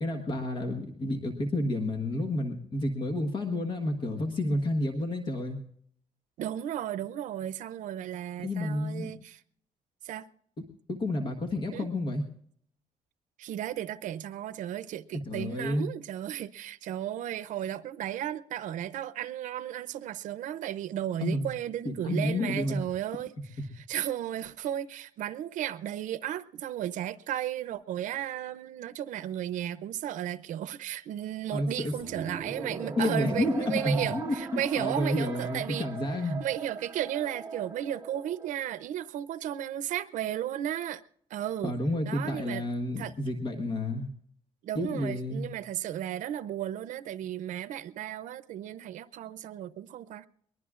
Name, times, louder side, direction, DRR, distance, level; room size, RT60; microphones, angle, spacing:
voice 1, 0.0-5.6 8.4-9.2 10.9-12.2 15.3-15.9 21.2-21.5 21.8-22.8 31.5-31.9 33.0-36.4 41.6-44.1 44.7-45.5, left 1 dB, 35° left, 1.3 m, -30 dB
voice 2, 6.4-9.4 10.0-10.3 11.7-11.9 13.4-23.3 23.8-35.9 36.4-41.0 41.3-41.7 42.1-42.6 43.0-43.1 44.6-50.3, right 11 dB, 85° right, 0.6 m, -34 dB
sound 1, 32.0-38.5, right 4 dB, 20° right, 1.3 m, -40 dB
22.5 x 20.5 x 2.5 m
cardioid pair, 170°, 13 cm